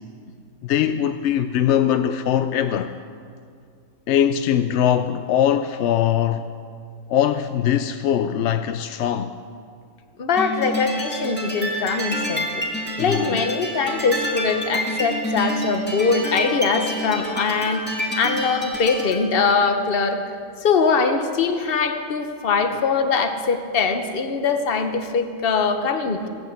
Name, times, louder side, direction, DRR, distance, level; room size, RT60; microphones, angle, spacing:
voice 1, 0.6-2.9 4.1-6.5 7.1-9.3 13.0-13.5, left 10 dB, 70° left, 0.8 m, -21 dB
voice 2, 10.2-12.6 13.0-17.8 18.2-20.2 20.6-26.3, left 5 dB, 50° left, 1.2 m, -22 dB
sound 1, 10.4-19.2, equal, 10° left, 2.2 m, -28 dB
17.0 x 9.4 x 8.1 m
omnidirectional pair, 1.3 m